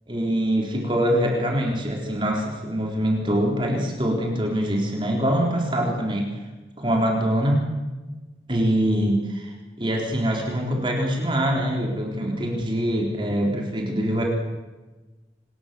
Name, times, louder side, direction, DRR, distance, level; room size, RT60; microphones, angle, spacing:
voice 1, 0.1-6.2 6.8-7.6 8.5-9.5 9.8-14.2, equal, 30° right, 0 dB, 4.0 m, -24 dB
26.0 x 20.5 x 7.0 m, 1.2 s
head